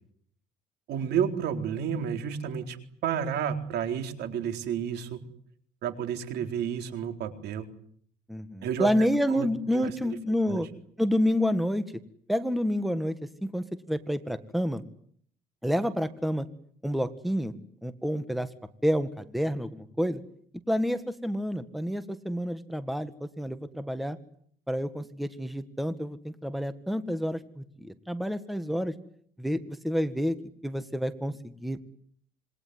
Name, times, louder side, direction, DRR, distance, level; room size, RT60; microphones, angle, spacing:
voice 1, 0.9-5.2 5.8-7.7 8.6-8.9 9.3-9.5 9.7-9.9 10.5-10.6, right 8 dB, 75° right, 7 dB, 4.1 m, -31 dB
voice 2, 8.3-10.7 11.0-11.8 12.3-13.2 13.4-14.8 15.6-16.5 16.8-17.5 17.8-18.5 18.8-20.2 20.7-24.2 24.7-28.9 29.4-30.4 30.6-31.8, equal, ahead, 11 dB, 1.8 m, -29 dB
27.0 x 22.0 x 9.6 m, 0.64 s
cardioid pair, 110°, 17 cm